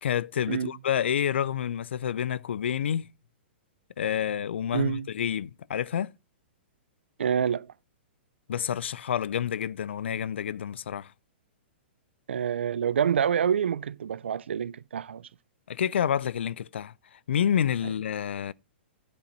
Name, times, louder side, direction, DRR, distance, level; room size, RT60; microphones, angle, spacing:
voice 1, 0.0-3.1 4.0-6.1 8.5-11.1 15.7-18.5, left 9 dB, 80° left, 0.4 m, -29 dB
voice 2, 4.7-5.1 7.2-7.7 12.3-15.2, right 8 dB, 85° right, 0.4 m, -27 dB
10.5 x 5.2 x 5.9 m
hypercardioid pair, 130°, 6 cm